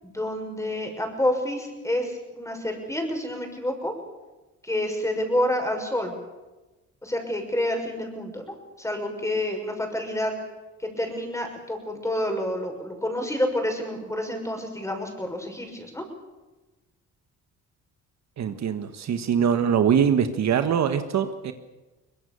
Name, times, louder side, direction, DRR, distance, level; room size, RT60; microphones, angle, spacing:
voice 1, 0.0-3.9 4.6-6.1 7.0-10.3 10.8-16.0, left 1 dB, 10° left, 4 dB, 6.2 m, -28 dB
voice 2, 18.4-21.5, right 8 dB, 65° right, 8 dB, 1.6 m, -23 dB
23.0 x 21.0 x 6.9 m, 1.1 s
cardioid pair, 90°, 30 cm